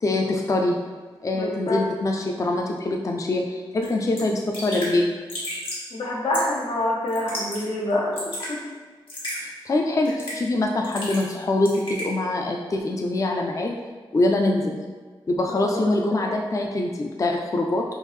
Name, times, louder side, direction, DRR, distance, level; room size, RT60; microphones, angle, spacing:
voice 1, 0.0-0.8 1.2-5.1 9.4-13.8 14.1-14.8 15.3-17.8, left 2 dB, 35° left, 1 dB, 0.4 m, -24 dB
voice 2, 1.3-1.8 5.9-8.6 15.5-16.4, left 1 dB, 90° left, -4 dB, 0.8 m, -27 dB
Raindrop / Drip, 3.8-3.9 4.2-4.3 4.5-4.9 5.3-5.8 6.3-6.6 7.1-7.6 7.9-8.5 9.1-9.4 10.0-10.5 10.8-11.4 11.6-12.1, left 1 dB, 70° left, 1.3 m, -32 dB
3.5 x 2.7 x 3.1 m, 1.4 s
wide cardioid pair, 80°, 9 cm